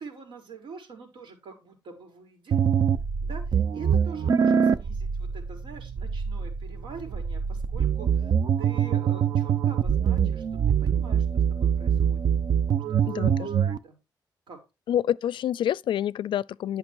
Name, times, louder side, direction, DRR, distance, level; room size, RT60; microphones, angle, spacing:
voice 1, 0.0-2.6 3.2-12.2 12.9-14.0 14.5-14.6, right 4 dB, 80° right, 4.3 m, -45 dB
sound 1, 2.5-13.8, right 7 dB, 55° right, 0.7 m, -24 dB
voice 2, 13.1-13.5 14.9-16.8, left 10 dB, 80° left, 0.4 m, -27 dB
11.5 x 5.8 x 4.6 m
wide cardioid pair, 165°, 8 cm